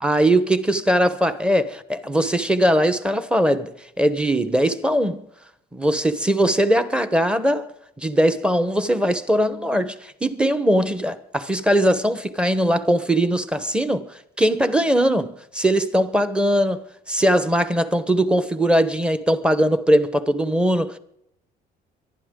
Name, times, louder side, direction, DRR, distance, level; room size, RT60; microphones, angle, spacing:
voice 1, 0.0-5.3 5.7-7.7 8.0-21.0, right 1 dB, 5° right, 1.1 m, -20 dB
24.0 x 11.5 x 3.8 m
cardioid pair, 110°, 17 cm